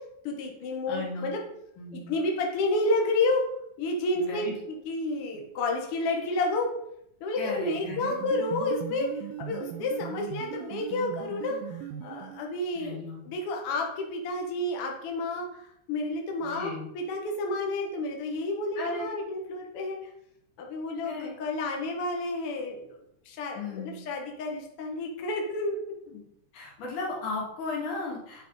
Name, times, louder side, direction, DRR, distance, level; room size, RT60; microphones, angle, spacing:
voice 1, 0.2-1.4 2.1-3.4 3.8-6.7 7.2-13.0 13.3-20.0 20.6-22.9 23.3-25.8, left 2 dB, 55° left, 1 dB, 1.9 m, -30 dB
voice 2, 0.9-1.3 1.8-2.1 4.2-4.6 7.4-8.2 12.8-13.3 16.4-16.9 18.8-19.1 21.0-21.3 23.5-24.0 26.1-26.2 26.5-28.5, left 3 dB, 80° left, -3 dB, 3.7 m, -36 dB
sound 1, 7.7-12.6, right 10 dB, 85° right, 2.1 m, -39 dB
9.9 x 5.1 x 4.0 m, 0.76 s
omnidirectional pair, 3.5 m